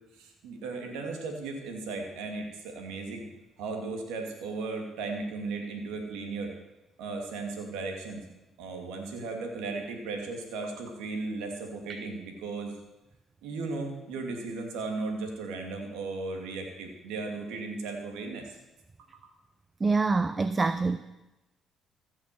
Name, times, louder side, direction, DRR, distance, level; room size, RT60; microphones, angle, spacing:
voice 1, 0.2-3.2 3.6-6.5 7.0-8.2 8.6-12.7 13.4-18.6, right 3 dB, 90° right, 3 dB, 2.4 m, -36 dB
voice 2, 19.8-21.0, right 3 dB, 25° right, 12 dB, 0.6 m, -25 dB
15.0 x 6.5 x 7.6 m, 0.98 s
supercardioid pair, 75°, 0 cm